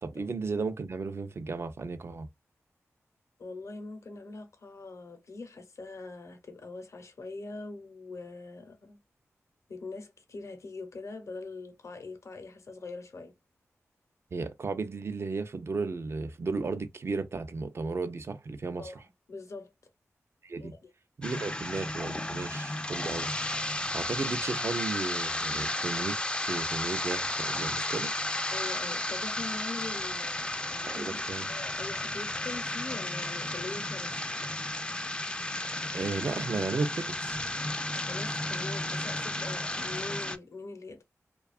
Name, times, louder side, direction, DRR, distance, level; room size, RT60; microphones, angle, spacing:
voice 1, 0.0-2.3 14.3-19.0 20.4-20.7 21.2-23.3 23.9-28.1 30.9-31.5 35.9-37.4, right 4 dB, 55° right, 0.5 m, -34 dB
voice 2, 3.4-9.0 9.7-13.3 18.8-19.0 19.3-19.7 20.6-20.9 28.5-31.1 31.4-34.2 38.0-41.0, left 3 dB, 65° left, 0.7 m, -42 dB
sound 1, 21.2-40.4, left 1 dB, 20° left, 0.4 m, -33 dB
2.7 x 2.3 x 2.4 m
wide cardioid pair, 75°, 5 cm